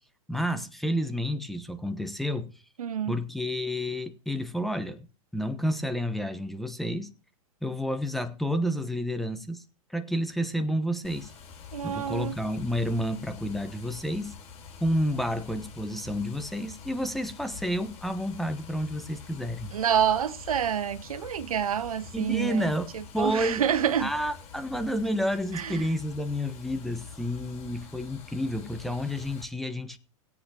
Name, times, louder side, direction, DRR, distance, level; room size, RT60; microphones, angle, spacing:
voice 1, 0.3-2.5 3.1-5.1 5.3-7.1 7.6-9.6 9.9-11.3 11.8-14.3 14.8-19.7 22.1-23.6 24.0-30.0, equal, ahead, 1.0 m, -30 dB
voice 2, 2.8-3.1 11.7-12.4 19.7-22.7 22.9-24.1 25.5-25.8, right 9 dB, 80° right, 0.9 m, -28 dB
Water, 11.0-29.4, left 6 dB, 35° left, 4.8 m, -46 dB
20.0 x 8.5 x 2.9 m
hypercardioid pair, 115°, 18 cm